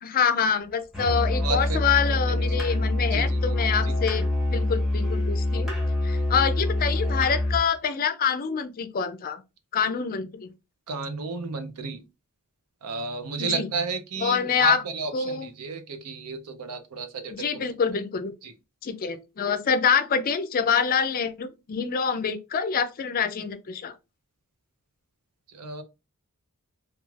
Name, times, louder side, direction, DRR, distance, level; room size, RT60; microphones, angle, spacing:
voice 1, 0.0-5.7 6.0-9.4 9.7-10.5 13.4-13.7 14.2-14.8 15.1-15.5 17.3-18.3 18.8-23.9, left 6 dB, 40° left, 0.4 m, -26 dB
Musical instrument, 0.9-7.7, left 1 dB, ahead, 0.8 m, -25 dB
voice 2, 1.4-1.8 2.3-2.6 3.1-3.4 3.8-3.9 10.9-12.0 12.8-17.7 18.4-18.5 25.5-25.8, right 4 dB, 85° right, 0.6 m, -32 dB
3.1 x 2.4 x 2.3 m
head